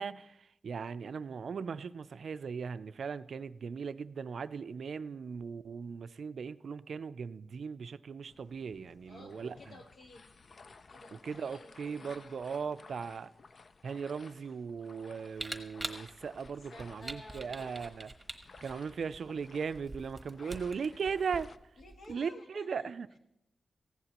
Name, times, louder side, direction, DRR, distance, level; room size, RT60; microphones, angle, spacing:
voice 1, 0.0-9.8 11.2-13.3 13.8-18.1 18.6-21.5 22.1-23.2, right 6 dB, 65° right, 13 dB, 0.4 m, -38 dB
sound 1, 8.3-21.6, left 4 dB, 45° left, 0.4 m, -56 dB
voice 2, 9.0-10.3 10.9-13.1 16.7-17.9 20.4-21.5 21.8-22.9, left 2 dB, 65° left, 3 dB, 1.7 m, -54 dB
Camera, 15.3-22.1, right 2 dB, 15° right, 1.2 m, -45 dB
19.0 x 15.5 x 2.9 m, 0.86 s
wide cardioid pair, 145°, 0 cm